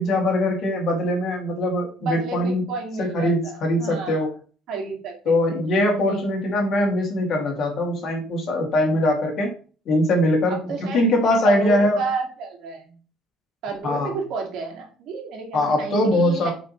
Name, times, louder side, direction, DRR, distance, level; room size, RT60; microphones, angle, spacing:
voice 1, 0.0-2.6 3.0-4.3 5.3-9.5 9.9-12.0 13.8-14.1 15.5-16.5, left 1 dB, 45° left, 1 dB, 2.5 m, -22 dB
voice 2, 2.0-4.2 4.7-5.6 5.9-6.3 8.9-9.0 10.5-11.0 11.4-12.9 13.6-16.5, right 4 dB, 60° right, 1 dB, 2.3 m, -31 dB
8.6 x 5.1 x 3.2 m, 0.39 s
cardioid pair, 150°, 0 cm